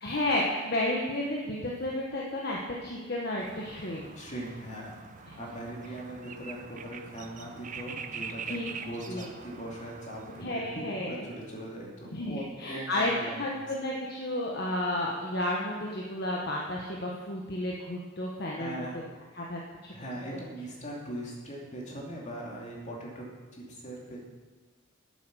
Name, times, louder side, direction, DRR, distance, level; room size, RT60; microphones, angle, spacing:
voice 1, 0.0-4.1 8.5-8.6 9.1-9.3 10.4-11.3 12.1-13.1 13.4-18.9 19.3-19.6, left 1 dB, 55° left, -2 dB, 1.2 m, -32 dB
sound 1, 3.4-10.4, right 5 dB, 40° right, 0.7 m, -44 dB
voice 2, 4.2-13.7 18.6-19.1 19.9-23.3 23.5-24.2, right 1 dB, 35° left, -3 dB, 2.7 m, -40 dB
9.6 x 8.5 x 6.3 m, 1.3 s
head